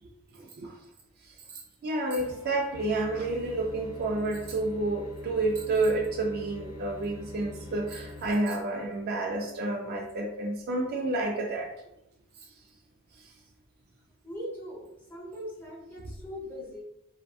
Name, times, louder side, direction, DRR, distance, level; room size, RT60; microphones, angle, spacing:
voice 1, 0.0-0.8 1.2-11.7 13.2-13.3, right 2 dB, 45° right, 2 dB, 0.3 m, -30 dB
sound 1, 2.2-8.3, left 2 dB, 85° left, 0.6 m, -45 dB
voice 2, 14.2-16.8, equal, 10° left, -6 dB, 0.8 m, -40 dB
2.5 x 2.3 x 2.3 m, 0.83 s
head